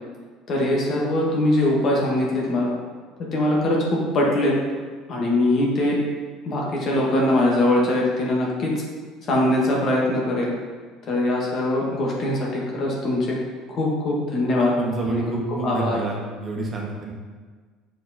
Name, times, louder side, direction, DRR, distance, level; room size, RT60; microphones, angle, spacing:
voice 1, 0.5-2.7 3.3-4.5 5.1-6.0 6.4-8.7 9.2-10.5 11.0-13.4 13.7-14.7 15.1-15.2 15.6-16.0, left 1 dB, 45° left, -3 dB, 1.8 m, -22 dB
voice 2, 14.8-17.1, right 3 dB, 35° right, -2 dB, 1.6 m, -28 dB
6.7 x 4.6 x 4.2 m, 1.5 s
figure-of-eight pair, 65°, 0 cm